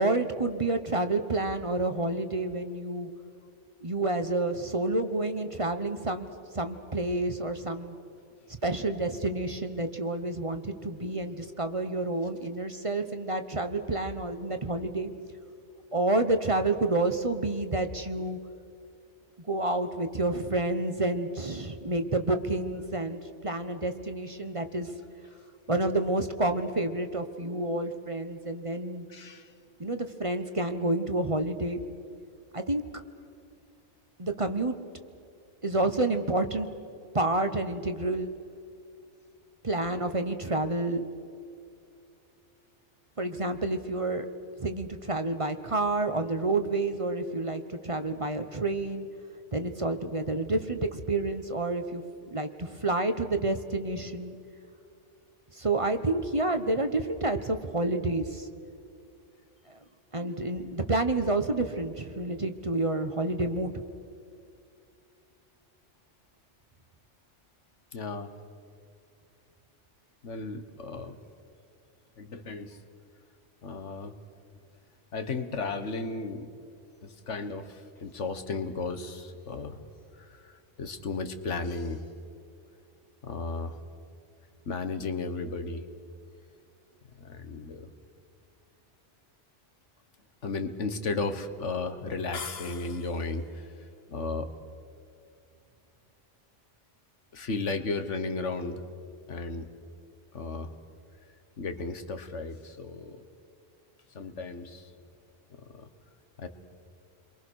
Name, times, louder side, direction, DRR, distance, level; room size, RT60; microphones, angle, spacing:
voice 1, 0.0-3.1 3.8-6.3 6.5-7.9 8.6-15.1 15.9-18.4 19.5-24.9 25.7-29.1 29.8-31.8 32.5-32.8 34.2-34.7 35.6-36.7 37.1-38.3 39.6-41.0 43.2-44.3 44.6-49.1 49.5-52.0 52.3-54.4 55.5-58.5 60.1-63.7, right 2 dB, 30° right, 7 dB, 1.1 m, -29 dB
voice 2, 29.1-29.5 67.9-68.3 70.2-71.2 72.2-72.8 73.6-74.2 75.1-76.5 77.0-79.8 80.1-82.0 83.2-83.8 84.6-85.8 87.2-87.9 90.4-94.5 97.3-98.8 99.3-99.7 100.3-100.7 101.6-103.2 104.1-104.9 105.7-105.9 106.4-106.5, left 3 dB, 85° left, 9 dB, 1.7 m, -34 dB
sound 1, 92.3-93.4, left 5 dB, 60° left, 1.4 m, -41 dB
29.5 x 23.0 x 6.4 m, 2.5 s
omnidirectional pair, 1.2 m